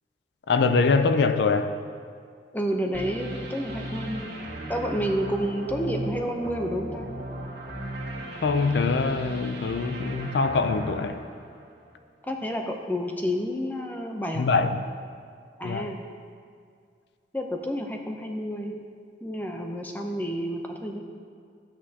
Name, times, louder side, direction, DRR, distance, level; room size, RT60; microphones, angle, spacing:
voice 1, 0.5-1.7 8.4-11.2 14.3-14.9 15.6-15.9, left 4 dB, 75° left, 9 dB, 0.4 m, -23 dB
voice 2, 2.5-4.3 4.7-7.1 12.2-14.5 15.6-16.0 17.3-18.8 19.2-21.0, equal, 10° left, 2 dB, 0.6 m, -30 dB
sound 1, 2.9-12.0, right 1 dB, 70° right, 2.1 m, -36 dB
13.0 x 8.6 x 2.8 m, 2.2 s
head